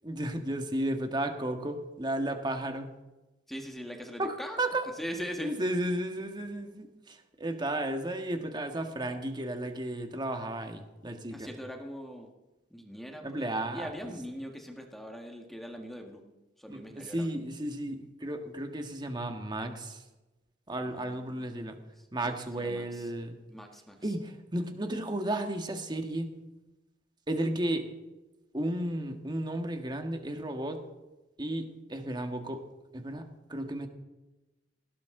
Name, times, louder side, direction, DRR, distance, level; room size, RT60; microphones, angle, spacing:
voice 1, 0.0-2.9 4.2-4.9 5.4-11.5 13.2-13.9 16.7-20.0 20.7-21.8 22.1-23.4 24.0-26.3 27.3-27.9 28.5-30.8 31.4-32.6 32.9-33.9, right 1 dB, 25° right, 5 dB, 1.7 m, -33 dB
voice 2, 3.5-4.6 5.0-5.5 11.3-12.3 12.7-16.2 16.6-17.4 20.7-21.7 22.0-23.1 23.5-24.1, equal, ahead, 2 dB, 1.7 m, -42 dB
19.5 x 17.0 x 3.8 m, 1.1 s
head